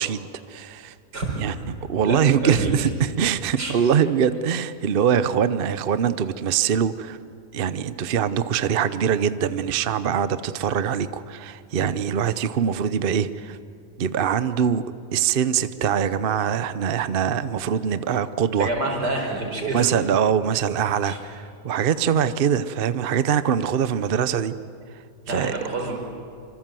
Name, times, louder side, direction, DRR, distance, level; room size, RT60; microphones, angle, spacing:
voice 1, 0.0-0.9 1.4-1.5 1.9-2.9 3.2-7.2 7.5-13.6 14.0-14.8 15.1-18.7 19.6-24.5 25.3-25.5, right 8 dB, 50° right, 13 dB, 0.7 m, -23 dB
voice 2, 1.1-1.6 2.0-2.9 3.6-3.7 18.6-20.0 21.0-21.2 25.3-26.0, right 2 dB, 85° right, 1 dB, 5.0 m, -28 dB
26.0 x 25.5 x 7.6 m, 2.4 s
omnidirectional pair, 1.7 m